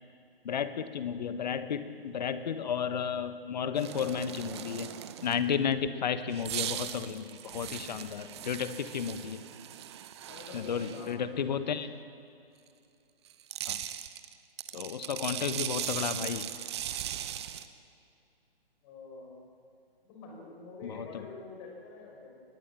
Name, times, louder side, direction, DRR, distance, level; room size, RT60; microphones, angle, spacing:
voice 1, 0.4-4.9 5.2-9.4 10.5-11.9 13.7-13.8 14.7-16.5 20.8-21.3, left 7 dB, 45° left, 11 dB, 1.4 m, -33 dB
sound 1, 3.7-5.5 6.3-11.1 13.3-17.7, right 11 dB, 25° right, 0.9 m, -39 dB
voice 2, 10.2-11.7 15.2-15.6 18.8-19.3 20.0-22.3, left 3 dB, 30° left, -1 dB, 6.5 m, -47 dB
22.5 x 20.0 x 7.6 m, 2.6 s
figure-of-eight pair, 140°, 30 cm